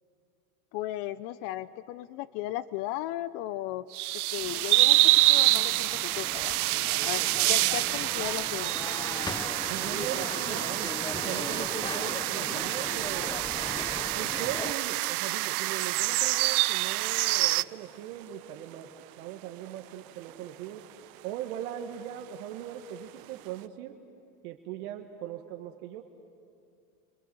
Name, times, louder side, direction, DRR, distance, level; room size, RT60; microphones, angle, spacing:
voice 1, 0.7-3.9 4.3-6.6 7.0-8.7, left 14 dB, 60° left, 16 dB, 0.9 m, -36 dB
sound 1, 3.9-17.6, right 19 dB, 90° right, 0.5 m, -27 dB
sound 2, 4.4-14.7, left 3 dB, 10° left, 0.8 m, -39 dB
voice 2, 9.7-13.4 14.2-18.9 19.2-20.8 21.2-24.0 24.4-26.0, right 11 dB, 75° right, 4 dB, 1.9 m, -39 dB
sound 3, 11.2-23.7, right 16 dB, 50° right, 1.1 m, -53 dB
30.0 x 26.5 x 7.1 m, 2.5 s
supercardioid pair, 105°, 44 cm